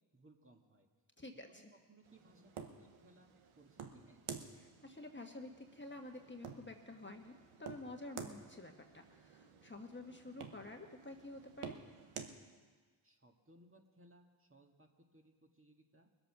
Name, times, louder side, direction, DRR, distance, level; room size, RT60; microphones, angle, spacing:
voice 1, 0.1-0.9 1.2-1.3 1.7-4.2 13.0-16.1, right 1 dB, 25° right, 2 dB, 1.8 m, -65 dB
voice 2, 1.2-1.7 4.6-11.8, left 2 dB, 25° left, 3 dB, 1.4 m, -50 dB
sound 1, 2.1-12.4, right 6 dB, 80° right, 1.1 m, -52 dB
21.0 x 7.8 x 6.0 m, 1.4 s
cardioid pair, 45°, 49 cm